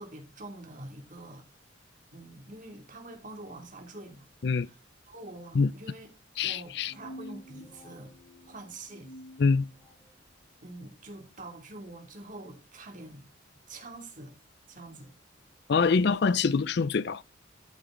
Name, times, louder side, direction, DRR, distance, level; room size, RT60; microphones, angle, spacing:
voice 1, 0.0-1.5 2.1-4.3 4.5-4.8 5.1-6.1 6.4-8.1 8.4-9.1 10.6-13.3 13.7-14.3 14.7-15.1 15.9-16.0, right 2 dB, 45° right, 2.6 m, -45 dB
voice 2, 6.4-6.9 9.4-9.7 15.7-17.2, left 4 dB, 60° left, 0.4 m, -25 dB
sound 1, 6.7-10.2, equal, 35° left, 5.3 m, -49 dB
14.0 x 8.2 x 3.8 m
head